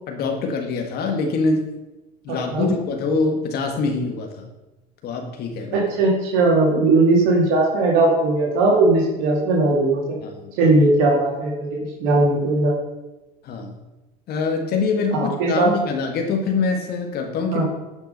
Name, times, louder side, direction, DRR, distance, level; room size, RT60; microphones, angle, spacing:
voice 1, 0.1-1.6 2.2-4.5 5.0-5.8 10.2-10.8 13.4-13.8 14.3-17.6, left 4 dB, 60° left, 3 dB, 1.6 m, -24 dB
voice 2, 2.3-2.7 5.7-10.2 10.6-12.7 15.1-15.7 17.5-17.6, right 2 dB, 75° right, -2 dB, 2.3 m, -18 dB
11.0 x 6.0 x 5.5 m, 1.0 s
supercardioid pair, 95°, 19 cm